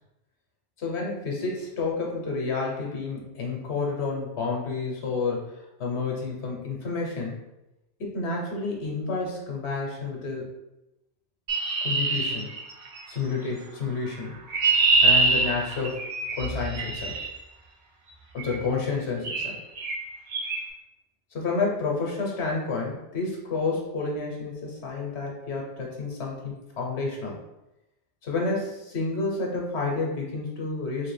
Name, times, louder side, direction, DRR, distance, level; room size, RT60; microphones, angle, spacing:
voice 1, 0.8-7.4 8.0-10.5 11.8-12.6 13.1-14.3 15.0-16.0 16.4-17.2 18.3-19.6 21.3-27.4 28.2-31.1, left 4 dB, 85° left, -1 dB, 1.1 m, -30 dB
Chirp tweet, 11.5-13.1 14.1-17.3 18.4-18.6 19.2-19.5 19.8-20.0 20.3-20.6, right 3 dB, 85° right, 1.0 m, -24 dB
3.3 x 2.8 x 3.2 m, 0.93 s
omnidirectional pair, 1.1 m